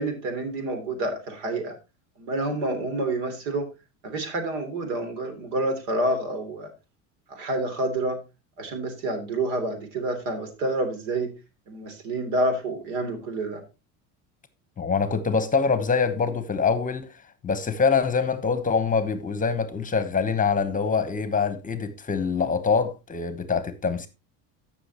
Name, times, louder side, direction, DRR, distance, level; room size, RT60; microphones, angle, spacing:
voice 1, 0.0-1.7 2.2-3.7 4.0-6.7 7.3-8.2 8.6-11.3 11.7-13.6, right 2 dB, 80° right, 3.2 m, -28 dB
voice 2, 14.8-17.1 17.4-24.1, left 5 dB, 20° left, 1.0 m, -24 dB
14.0 x 6.1 x 2.9 m
supercardioid pair, 110°, 36 cm